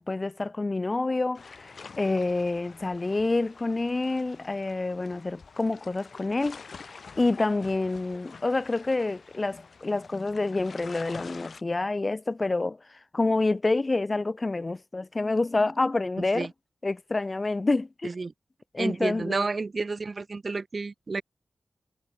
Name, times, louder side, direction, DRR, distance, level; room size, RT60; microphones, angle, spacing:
voice 1, 0.0-6.6 6.9-16.5 16.8-18.1 18.7-19.5, left 2 dB, 40° left, 3.1 m, -28 dB
sound 1, 1.3-11.6, left 5 dB, 75° left, 3.5 m, -47 dB
voice 2, 18.8-21.2, right 3 dB, 55° right, 1.9 m, -30 dB
cardioid pair, 40°, 0 cm